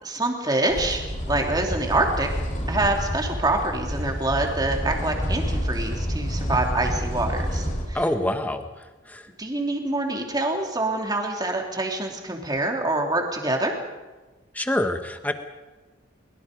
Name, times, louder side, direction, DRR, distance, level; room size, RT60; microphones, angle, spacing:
voice 1, 0.0-2.3 2.7-8.0 9.3-13.7, right 2 dB, 20° right, 2 dB, 2.9 m, -26 dB
sound 1, 0.7-7.8, equal, 40° left, 5.1 m, -28 dB
voice 2, 7.9-9.3 14.5-15.3, left 1 dB, 10° left, 7 dB, 1.3 m, -26 dB
23.0 x 22.0 x 5.3 m, 1.2 s
head